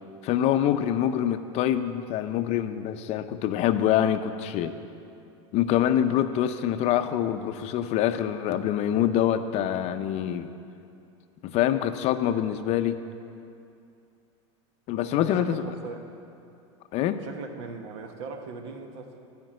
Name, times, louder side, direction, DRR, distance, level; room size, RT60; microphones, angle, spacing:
voice 1, 0.2-4.7 5.5-10.5 11.4-13.0 14.9-15.6 16.9-17.2, left 11 dB, 45° left, 9 dB, 0.6 m, -25 dB
voice 2, 15.1-16.1 17.2-19.2, right 4 dB, 70° right, 5 dB, 1.2 m, -39 dB
12.0 x 5.2 x 8.8 m, 2.6 s
supercardioid pair, 130°, 16 cm